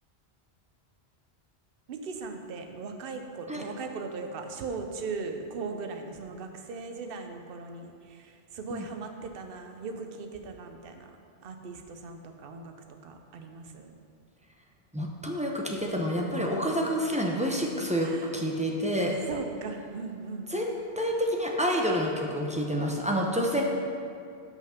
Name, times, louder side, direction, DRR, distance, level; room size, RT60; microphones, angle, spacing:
voice 1, 1.9-11.2 11.4-12.7 13.0-13.9 18.0-18.3 19.3-20.5, right 4 dB, 60° right, 5 dB, 0.8 m, -38 dB
voice 2, 14.9-19.2 20.5-23.6, equal, 10° right, -1 dB, 0.5 m, -28 dB
6.0 x 5.7 x 5.7 m, 2.4 s
omnidirectional pair, 1.1 m